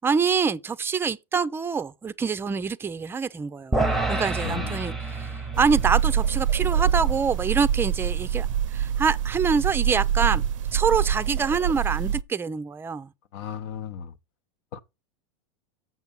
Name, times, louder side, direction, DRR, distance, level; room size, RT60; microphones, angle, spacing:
voice 1, 0.0-3.8 4.1-8.5 8.7-10.4 10.7-13.1, right 5 dB, 15° right, 0.5 m, -25 dB
sound 1, 3.7-10.1, right 2 dB, ahead, 0.9 m, -31 dB
voice 2, 4.4-4.8 13.3-14.1 14.7-14.8, left 8 dB, 65° left, 1.0 m, -35 dB
sound 2, 5.5-12.2, right 9 dB, 85° right, 0.5 m, -25 dB
7.4 x 5.8 x 5.4 m
supercardioid pair, 120°, 16 cm